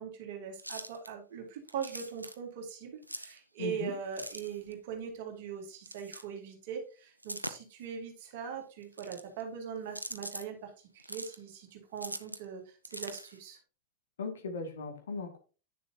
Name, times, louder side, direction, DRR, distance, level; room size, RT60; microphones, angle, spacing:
voice 1, 0.0-13.6, right 7 dB, 50° right, 2 dB, 2.4 m, -41 dB
sound 1, 0.6-1.1 1.7-2.4 3.0-3.4 4.1-4.7 5.9-6.2 7.2-7.8 8.8-9.4 9.9-10.5 11.0-11.4 12.0-12.4 12.8-13.4, right 1 dB, 85° right, 0.6 m, -42 dB
voice 2, 3.6-3.9 14.2-15.4, left 4 dB, 65° left, 3 dB, 2.2 m, -38 dB
9.5 x 6.8 x 2.9 m, 0.34 s
figure-of-eight pair, 90°, 0 cm